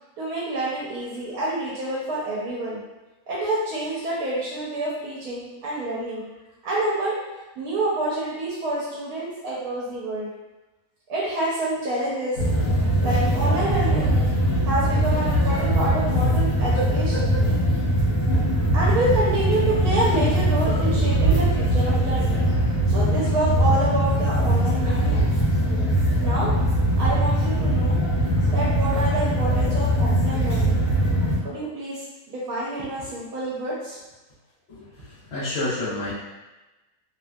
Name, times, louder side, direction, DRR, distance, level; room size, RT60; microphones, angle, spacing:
voice 1, 0.2-2.8 3.3-6.2 6.6-7.2 7.6-10.3 11.1-12.4 13.0-14.2 14.6-17.4 18.7-22.4 22.9-25.2 26.2-26.5 27.0-28.0 28.5-30.9 31.4-34.0, right 1 dB, 80° right, -6 dB, 1.2 m, -27 dB
sound 1, 12.4-31.4, right 1 dB, 65° left, 1.6 m, -21 dB
voice 2, 34.7-36.1, left 2 dB, 50° left, -8 dB, 1.1 m, -30 dB
3.2 x 2.6 x 2.3 m, 1.1 s
omnidirectional pair, 1.6 m